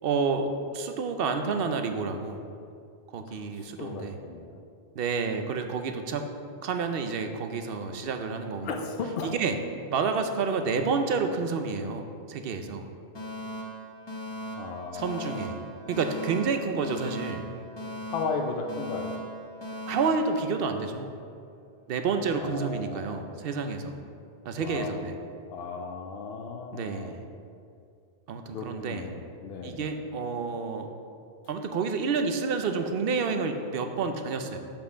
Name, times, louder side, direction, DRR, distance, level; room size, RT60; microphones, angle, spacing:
voice 1, 0.0-2.4 3.1-4.2 5.0-6.3 6.6-8.7 9.2-9.6 9.9-12.9 14.9-15.6 15.9-17.4 19.9-21.1 21.9-23.9 24.4-25.1 26.7-27.2 28.3-29.1 29.6-30.9 31.5-34.6, right 5 dB, 65° right, 6 dB, 0.8 m, -29 dB
voice 2, 3.3-4.6 8.6-9.4 14.6-15.5 18.1-19.3 22.4-23.4 24.5-25.1 25.5-27.2 28.5-30.0, left 4 dB, 65° left, 3 dB, 0.8 m, -36 dB
Alarm, 13.1-21.2, equal, 25° left, 0.8 m, -39 dB
5.6 x 4.4 x 6.2 m, 2.4 s
omnidirectional pair, 1.1 m